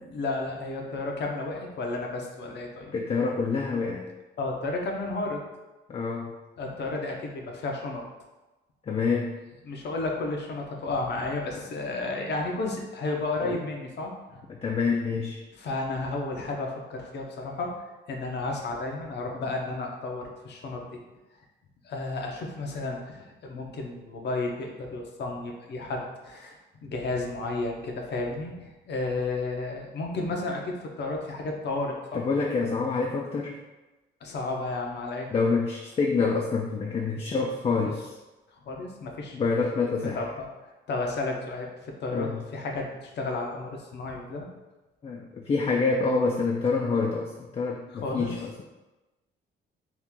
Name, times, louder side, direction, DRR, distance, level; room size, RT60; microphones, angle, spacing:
voice 1, 0.1-2.9 4.4-5.4 6.6-8.0 9.6-14.4 15.6-17.7 18.1-20.9 21.8-26.6 26.8-32.2 34.2-35.3 38.6-39.4 40.1-40.5 40.9-44.5 47.9-48.3, left 2 dB, 60° left, 1 dB, 0.7 m, -32 dB
voice 2, 2.9-4.1 5.9-6.3 8.8-9.4 13.4-13.6 14.5-15.4 32.1-33.6 35.3-38.2 39.3-40.3 42.1-42.4 45.0-48.6, left 4 dB, 30° left, 0 dB, 0.4 m, -27 dB
2.9 x 2.4 x 3.6 m, 1.1 s
cardioid pair, 90°, 20 cm